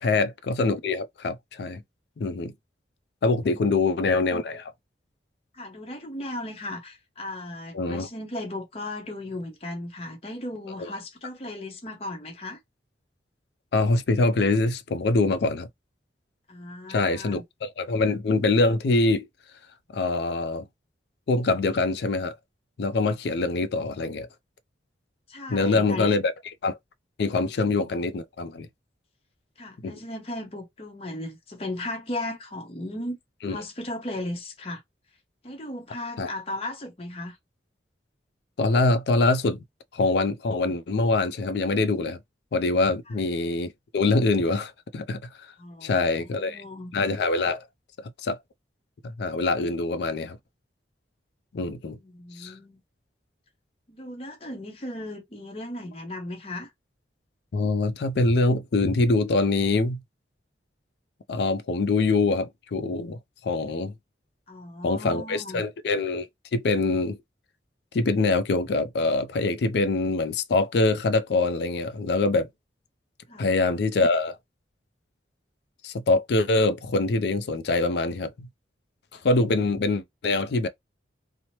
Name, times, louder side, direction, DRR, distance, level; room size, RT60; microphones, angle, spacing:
voice 1, 0.0-1.8 2.2-2.5 3.2-4.7 7.7-8.1 10.8-10.9 13.7-15.7 16.9-19.3 19.9-20.6 21.3-22.3 22.8-24.3 25.5-26.3 26.6-26.8 27.2-28.7 29.8-30.0 33.4-33.6 36.2-36.3 38.6-39.6 39.9-42.2 42.5-45.3 45.8-46.6 46.9-47.6 48.0-48.4 49.2-50.4 51.5-52.0 52.4-52.5 57.5-60.0 61.3-63.9 64.8-66.3 66.5-67.2 67.9-72.5 73.4-74.4 75.8-78.5 79.1-80.7, left 3 dB, 65° left, 0.4 m, -24 dB
voice 2, 5.5-12.6 16.5-17.4 25.3-26.1 29.6-33.2 33.5-34.8 35.4-37.4 43.1-43.2 45.6-46.9 52.0-52.8 53.9-56.7 64.5-65.6 73.3-73.5, left 1 dB, 30° left, 0.7 m, -36 dB
2.9 x 2.0 x 3.0 m
head